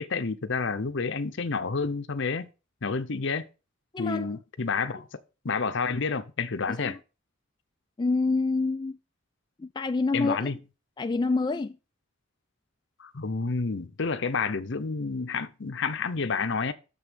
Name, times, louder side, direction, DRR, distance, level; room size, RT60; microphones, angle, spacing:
voice 1, 0.0-2.5 2.8-3.4 4.0-5.1 5.4-7.0 10.1-10.6 13.0-16.7, left 4 dB, 60° left, 0.8 m, -29 dB
voice 2, 3.9-4.4 6.6-7.0 8.0-9.0 9.6-10.5 11.0-11.8, left 3 dB, 20° left, 0.3 m, -27 dB
6.9 x 5.5 x 6.2 m
head